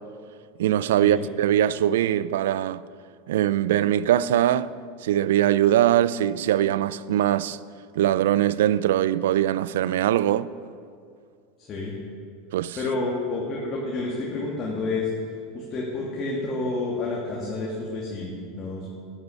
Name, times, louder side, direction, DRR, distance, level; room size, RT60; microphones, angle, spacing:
voice 1, 0.6-2.8 3.3-4.7 5.0-7.6 8.0-10.5 12.5-12.8, right 12 dB, 75° right, 0.4 m, -22 dB
voice 2, 11.6-11.9 12.8-15.1 15.5-18.9, left 3 dB, 35° left, 2.6 m, -29 dB
13.0 x 9.9 x 6.9 m
hypercardioid pair, 90°, 0 cm